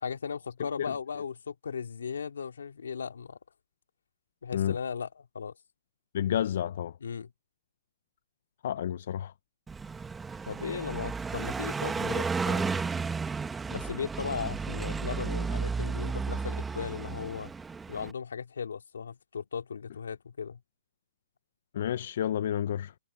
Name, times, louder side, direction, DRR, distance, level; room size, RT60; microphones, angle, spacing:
voice 1, 0.0-3.4 4.4-5.5 7.0-7.3 10.5-12.8 13.7-17.5 17.9-20.6, left 6 dB, 85° left, 2.4 m, -37 dB
voice 2, 6.1-6.9 8.6-9.3 21.7-22.9, left 10 dB, 60° left, 0.6 m, -30 dB
Car passing by, 9.7-18.1, right 5 dB, 10° right, 1.2 m, -33 dB
hypercardioid pair, 145°, 0 cm